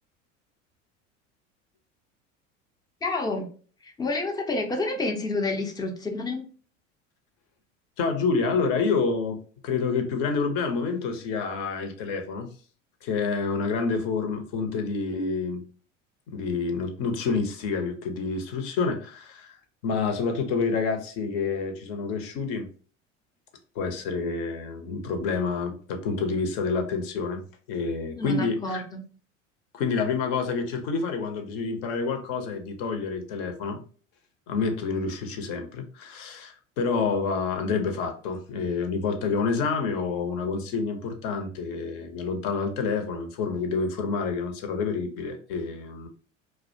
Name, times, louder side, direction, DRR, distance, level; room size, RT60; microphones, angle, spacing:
voice 1, 3.0-3.5 3.8-6.4 28.1-29.0, left 2 dB, 10° left, 0.4 m, -29 dB
voice 2, 8.0-12.5 13.0-15.6 16.3-19.5 19.8-22.7 23.8-27.4 27.7-28.8 29.7-33.8 34.5-46.1, left 4 dB, 55° left, 0.7 m, -28 dB
2.3 x 2.1 x 2.5 m
hypercardioid pair, 85°, 38 cm